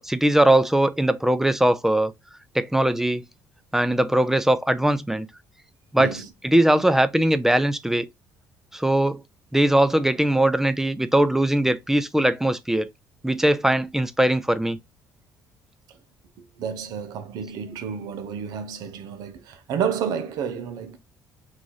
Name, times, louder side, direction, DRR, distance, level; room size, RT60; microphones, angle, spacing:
voice 1, 0.0-2.1 2.5-3.2 3.7-5.3 5.9-6.2 6.4-8.1 8.7-9.2 9.5-12.9 13.2-14.8, right 1 dB, 5° right, 0.5 m, -20 dB
voice 2, 6.0-6.3 16.6-21.0, right 7 dB, 75° right, 0.7 m, -30 dB
3.1 x 2.5 x 3.8 m
supercardioid pair, 75°, 7 cm